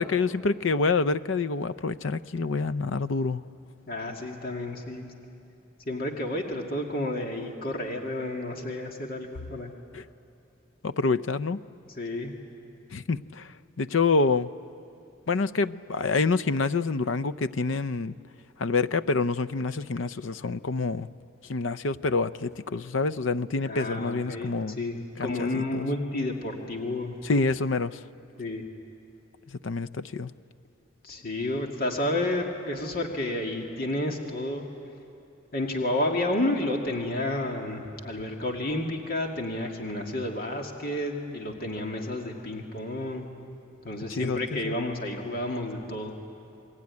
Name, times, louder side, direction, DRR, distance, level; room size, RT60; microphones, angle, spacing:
voice 1, 0.0-3.4 9.9-10.0 10.8-11.6 12.9-13.5 13.8-14.5 15.3-18.2 18.6-21.1 21.5-24.8 25.2-25.8 27.2-28.0 29.6-30.3 44.1-44.7, left 4 dB, 70° left, 14 dB, 0.6 m, -27 dB
voice 2, 3.9-5.1 5.9-9.7 12.0-12.3 23.6-27.2 28.4-28.6 31.0-34.7 35.5-43.3 43.8-46.2, left 1 dB, 45° left, 1 dB, 2.1 m, -31 dB
28.5 x 21.0 x 9.6 m, 2.6 s
head